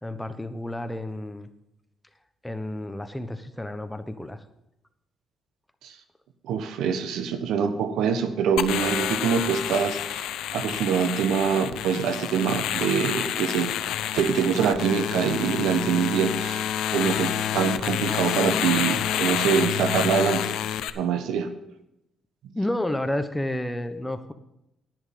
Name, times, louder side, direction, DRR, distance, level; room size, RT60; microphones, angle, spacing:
voice 1, 0.0-1.5 2.4-4.4 22.5-24.3, left 1 dB, 5° left, 9 dB, 1.1 m, -31 dB
voice 2, 6.4-10.2 10.5-13.7 14.1-16.6 16.9-21.5, right 7 dB, 80° right, 10 dB, 1.2 m, -25 dB
sound 1, 8.6-20.9, left 10 dB, 85° left, 0.6 m, -28 dB
11.0 x 9.9 x 5.3 m, 0.86 s
cardioid pair, 90°, 0 cm